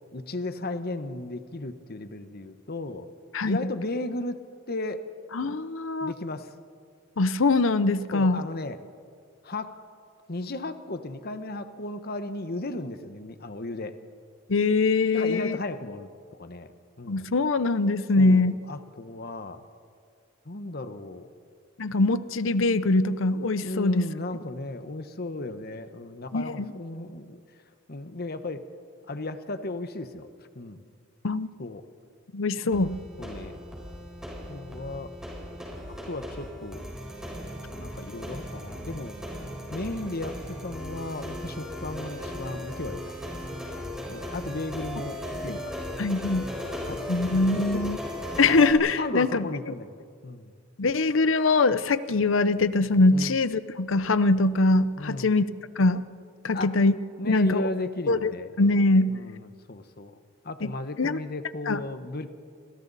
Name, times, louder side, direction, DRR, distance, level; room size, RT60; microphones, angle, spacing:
voice 1, 0.1-3.1 3.4-4.4 4.7-5.0 6.0-6.5 8.1-8.8 9.4-9.7 10.3-14.0 15.1-16.1 16.4-16.7 17.0-17.3 18.2-19.6 20.4-21.3 23.6-27.4 27.9-28.7 29.1-30.3 30.5-30.8 31.6-31.8 32.6-32.7 33.2-33.6 34.5-35.1 35.9-36.9 37.7-39.1 39.7-43.1 44.1-45.9 46.9-47.2 47.5-47.8 49.0-50.0 50.2-50.5 53.1-53.4 55.0-55.3 56.5-56.7 57.2-58.5 59.1-59.4 59.7-60.2 60.4-62.3, left 2 dB, 50° left, 9 dB, 1.1 m, -35 dB
voice 2, 5.3-6.1 7.2-8.4 14.5-15.6 17.1-18.6 21.8-24.1 26.3-26.7 31.2-31.5 32.3-33.0 45.5-45.6 46.0-46.5 47.1-48.0 48.4-49.5 50.8-55.5 55.8-56.0 56.4-56.9 57.3-57.7 58.1-58.3 58.6-59.1 60.6-60.7 61.0-61.2 61.7-61.8, left 3 dB, 70° left, 14 dB, 0.8 m, -23 dB
sound 1, 32.7-48.7, equal, 5° right, 4.3 m, -37 dB
30.0 x 26.0 x 4.2 m, 2.1 s
head